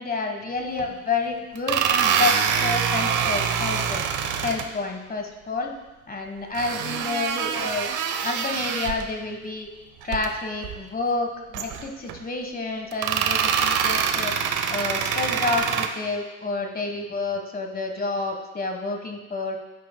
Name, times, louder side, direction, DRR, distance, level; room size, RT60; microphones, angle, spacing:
voice 1, 0.0-4.0 4.4-5.7 6.1-7.9 8.2-9.7 10.0-14.3 14.7-19.6, left 3 dB, 30° left, 3 dB, 1.4 m, -29 dB
sound 1, 0.8-0.9 1.6-4.7 6.5-9.1 10.0-10.3 10.6-10.8 11.5-12.2 12.9-15.9, right 7 dB, 90° right, 0.8 m, -25 dB
12.0 x 9.3 x 2.3 m, 1.1 s
cardioid pair, 90°, 30 cm